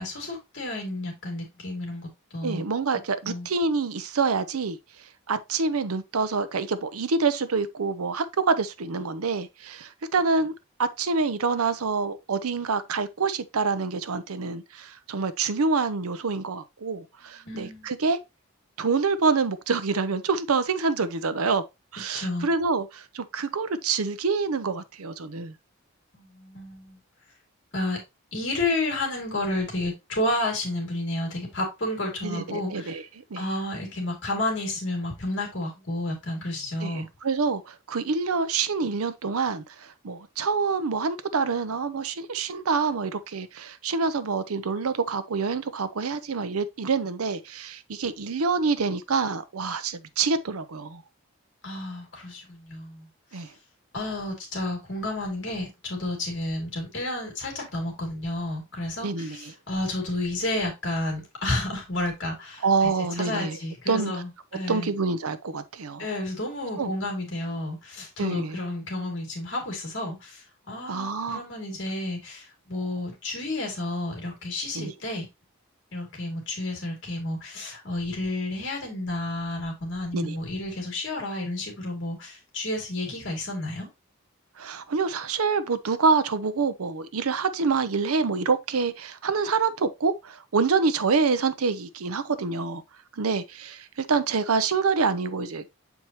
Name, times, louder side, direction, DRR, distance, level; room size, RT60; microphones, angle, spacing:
voice 1, 0.0-2.6 3.3-3.5 17.4-17.9 22.1-22.5 26.1-27.0 27.7-28.0 28.3-33.0 33.4-37.1 51.6-53.1 53.9-62.9 63.2-64.9 66.0-70.4 70.7-75.3 75.9-83.9, left 1 dB, 55° left, 2.7 m, -31 dB
voice 2, 2.4-4.8 5.3-10.5 10.8-18.2 18.8-21.6 21.9-25.6 32.2-33.0 33.3-33.4 36.8-51.0 53.3-53.5 59.0-59.5 62.6-63.6 63.9-64.1 64.7-66.1 66.8-66.9 68.2-68.6 70.9-71.4 74.7-74.9 80.1-80.4 84.6-92.8 93.1-95.7, right 4 dB, 85° right, 0.7 m, -26 dB
7.1 x 4.6 x 3.0 m
head